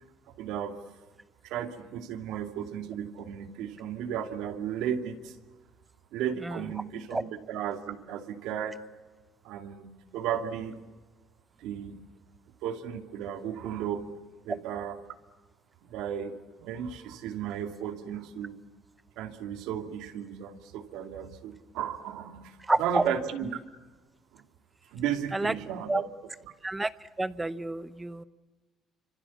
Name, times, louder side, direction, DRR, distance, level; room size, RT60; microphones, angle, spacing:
voice 1, 0.4-0.8 1.4-5.4 6.1-8.8 9.4-10.8 11.6-12.1 12.6-14.1 14.4-15.0 15.9-18.6 19.2-23.6 24.3-24.4 24.9-26.0 26.4-26.5, right 9 dB, 90° right, 7 dB, 2.5 m, -34 dB
voice 2, 22.7-23.0 25.3-25.5 25.9-26.0 26.6-26.9 27.2-28.2, right 2 dB, 10° right, 15 dB, 0.8 m, -28 dB
29.5 x 26.0 x 7.2 m, 1.3 s
cardioid pair, 170°, 0 cm